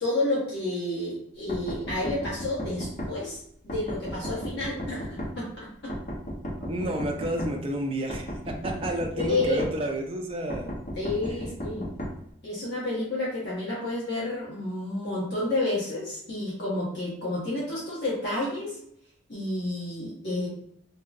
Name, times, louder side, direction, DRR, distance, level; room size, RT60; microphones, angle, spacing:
voice 1, 0.0-5.9 9.2-9.6 10.9-11.8 12.4-18.8 19.3-20.5, left 2 dB, 65° left, -7 dB, 1.2 m, -30 dB
sound 1, 1.5-3.1 3.7-5.3 5.9-7.5 8.1-9.7 10.5-12.1, equal, 45° left, 0.8 m, -34 dB
voice 2, 6.6-10.7, right 1 dB, 30° right, 1 dB, 0.5 m, -31 dB
3.0 x 2.7 x 2.5 m, 0.69 s
head